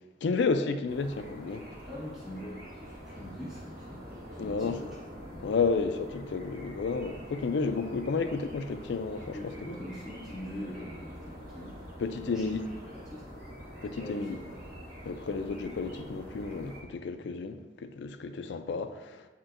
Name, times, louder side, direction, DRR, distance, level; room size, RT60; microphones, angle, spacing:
voice 1, 0.2-1.6 4.4-4.8 5.4-9.4 12.0-12.6 13.8-14.4 15.1-19.3, left 4 dB, 75° left, 0.4 m, -31 dB
sound 1, 0.9-16.8, equal, 50° right, 1.4 m, -46 dB
voice 2, 1.8-5.0 5.3-5.4 9.3-13.3 14.0-14.6, equal, 5° right, 1.5 m, -43 dB
8.7 x 4.3 x 2.5 m
head